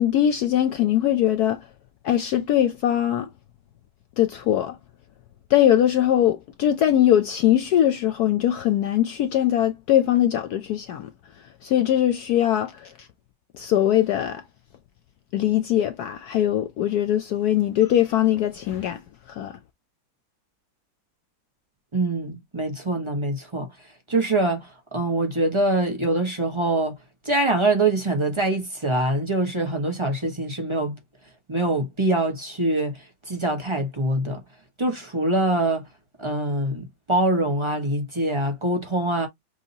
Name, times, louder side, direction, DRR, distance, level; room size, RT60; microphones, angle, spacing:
voice 1, 0.0-1.7 2.0-3.3 4.2-4.8 5.5-11.1 11.4-13.1 13.5-14.4 15.3-19.0 19.3-19.6, left 11 dB, 80° left, 0.8 m, -21 dB
voice 2, 21.9-23.7 24.1-27.0 27.2-31.0 31.5-34.4 34.8-35.9 36.2-39.3, right 2 dB, 15° right, 1.1 m, -24 dB
6.2 x 2.8 x 2.7 m
omnidirectional pair, 2.2 m